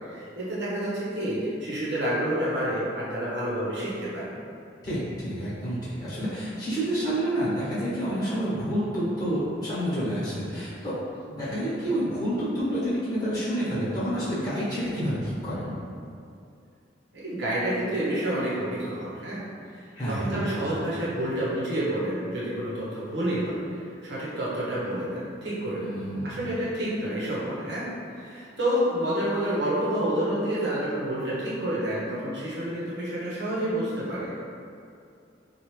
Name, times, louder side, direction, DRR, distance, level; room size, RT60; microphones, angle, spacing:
voice 1, 0.0-4.3 17.1-19.4 19.7-25.9 26.2-27.9 28.1-34.3, right 1 dB, 60° right, -8 dB, 1.1 m, -29 dB
voice 2, 4.8-11.0 11.3-15.7 19.9-20.5 25.7-26.3, equal, 20° left, -11 dB, 1.3 m, -29 dB
4.6 x 2.4 x 3.2 m, 2.4 s
head